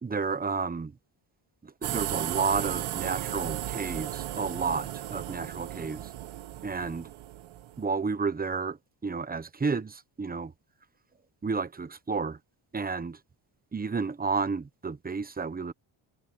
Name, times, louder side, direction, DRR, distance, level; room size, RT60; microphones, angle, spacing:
voice 1, 0.0-0.9 1.6-6.1 6.6-7.1 7.8-10.5 11.4-12.4 12.7-13.2 13.7-15.7, right 4 dB, 20° right, 1.0 m, -31 dB
sound 1, 1.8-7.8, right 13 dB, 80° right, 1.3 m, -35 dB
cardioid pair, 140°, 48 cm